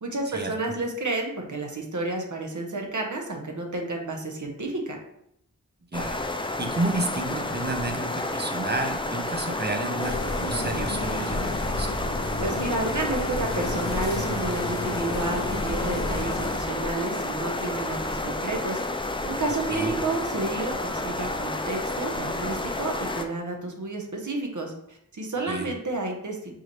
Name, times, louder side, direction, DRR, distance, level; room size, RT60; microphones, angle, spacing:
voice 1, 0.0-5.0 12.4-18.8 19.2-20.8 21.0-26.6, right 2 dB, 60° right, 2 dB, 0.8 m, -31 dB
sound 1, 5.9-23.3, left 2 dB, 15° left, 0.4 m, -30 dB
voice 2, 5.9-11.9 19.7-19.9 25.5-25.7, right 2 dB, 30° right, 5 dB, 0.6 m, -31 dB
sound 2, 10.0-16.6, left 2 dB, 55° left, 0.8 m, -32 dB
4.7 x 2.7 x 3.1 m, 0.75 s
wide cardioid pair, 40°, 35 cm